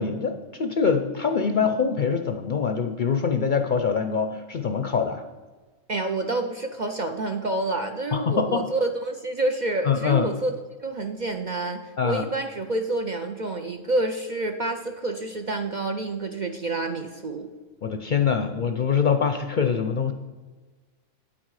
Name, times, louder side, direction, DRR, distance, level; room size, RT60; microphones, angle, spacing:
voice 1, 0.0-5.2 8.1-8.6 9.8-10.3 12.0-12.3 17.8-20.1, left 6 dB, 55° left, 7 dB, 0.6 m, -24 dB
voice 2, 5.9-10.5 10.8-17.5, right 2 dB, 50° right, 5 dB, 0.6 m, -28 dB
9.0 x 8.5 x 4.8 m, 1.3 s
omnidirectional pair, 1.3 m